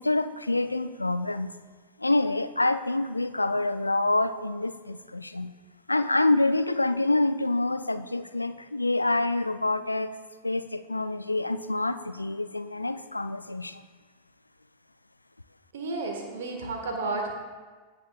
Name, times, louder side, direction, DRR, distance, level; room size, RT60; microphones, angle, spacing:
voice 1, 0.0-1.5 2.0-5.5 5.9-10.1 10.4-13.8, left 2 dB, 85° left, 12 dB, 0.4 m, -26 dB
voice 2, 15.7-17.3, right 3 dB, 60° right, 2 dB, 1.7 m, -32 dB
16.5 x 7.4 x 2.4 m, 1.4 s
figure-of-eight pair, 90°, 0 cm